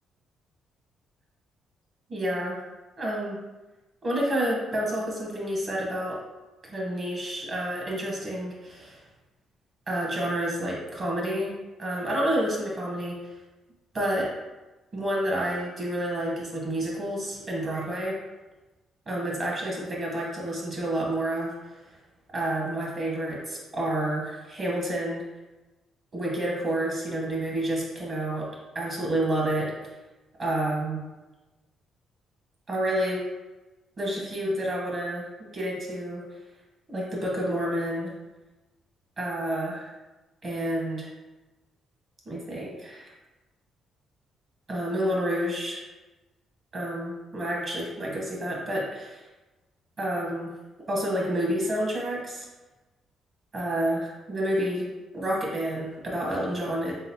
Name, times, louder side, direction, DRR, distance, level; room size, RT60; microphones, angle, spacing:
voice 1, 2.1-2.6 3.0-3.4 4.0-6.2 6.7-9.0 9.9-11.5 11.8-13.3 13.9-14.3 14.9-18.2 19.1-21.8 22.3-25.2 26.1-28.5 28.7-29.7 30.4-31.0 32.7-33.2 34.0-35.3 35.5-36.2 36.9-38.1 39.2-39.9 40.4-41.1 42.3-43.1 44.7-45.8 46.7-49.2 50.0-50.5 50.9-52.5 53.5-54.9 55.1-56.9, right 1 dB, 45° right, -2 dB, 1.1 m, -29 dB
3.9 x 3.6 x 2.8 m, 1.1 s
cardioid pair, 90°, 0 cm